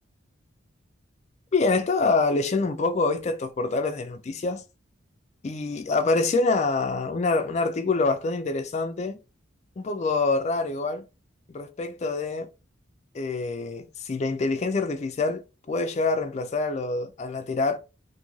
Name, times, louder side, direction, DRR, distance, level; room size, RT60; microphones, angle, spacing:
voice 1, 1.5-4.6 5.4-9.2 9.8-11.1 11.5-12.5 13.1-17.8, left 3 dB, 35° left, 0.4 m, -26 dB
2.6 x 2.5 x 3.0 m
head